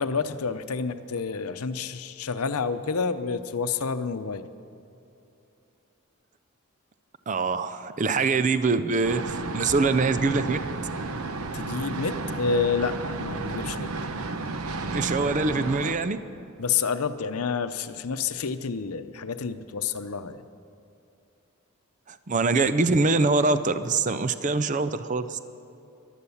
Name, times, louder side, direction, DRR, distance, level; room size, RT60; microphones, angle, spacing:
voice 1, 0.0-4.4 11.5-13.9 16.6-20.4, left 5 dB, 90° left, 11 dB, 0.7 m, -29 dB
voice 2, 7.3-10.6 14.9-16.2 22.1-25.4, right 3 dB, 35° right, 12 dB, 0.5 m, -24 dB
sound 1, 9.0-16.0, right 3 dB, 90° right, 0.8 m, -32 dB
15.0 x 11.5 x 7.1 m, 2.7 s
head